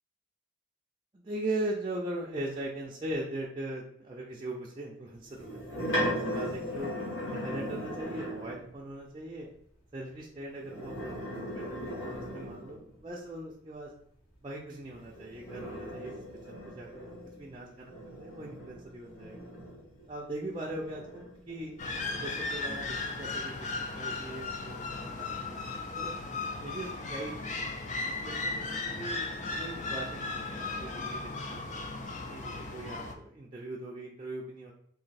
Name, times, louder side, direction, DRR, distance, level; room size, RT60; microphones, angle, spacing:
voice 1, 1.1-6.9 7.3-9.5 9.9-13.9 14.4-16.2 16.7-19.5 20.1-21.7 22.1-26.1 26.6-27.6 28.0-31.7 32.3-34.7, right 1 dB, 25° right, -4 dB, 0.4 m, -40 dB
sound 1, 5.3-8.6 10.6-12.9 14.9-20.1 20.6-22.4, equal, 90° left, 1.5 m, -38 dB
sound 2, 21.8-33.1, left 3 dB, 35° left, 0.4 m, -36 dB
3.1 x 2.6 x 4.0 m, 0.67 s
head